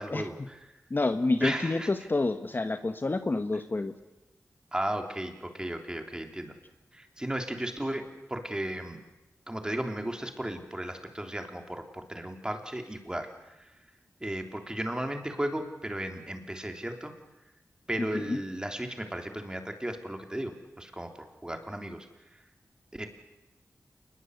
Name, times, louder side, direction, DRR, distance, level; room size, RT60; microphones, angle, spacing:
voice 1, 0.0-0.7 1.4-1.9 4.7-6.5 6.9-9.0 9.5-13.8 14.2-17.1 17.9-20.5 20.8-21.1 21.4-22.4 22.9-23.1, right 1 dB, 15° right, 4 dB, 3.5 m, -35 dB
voice 2, 0.9-3.9 18.1-18.4, left 2 dB, 35° left, 8 dB, 1.3 m, -28 dB
28.0 x 21.0 x 8.3 m, 0.98 s
wide cardioid pair, 90°, 6 cm